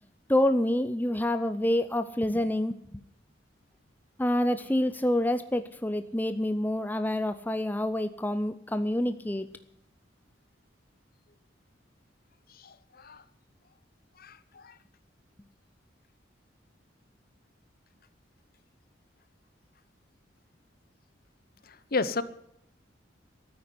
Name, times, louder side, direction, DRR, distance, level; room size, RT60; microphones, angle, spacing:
voice 1, 0.3-3.0 4.2-9.5, left 1 dB, 10° left, 10 dB, 0.5 m, -27 dB
voice 2, 12.5-13.2 14.2-14.8 21.7-22.2, left 3 dB, 50° left, 15 dB, 0.9 m, -33 dB
13.5 x 9.6 x 9.8 m, 0.75 s
head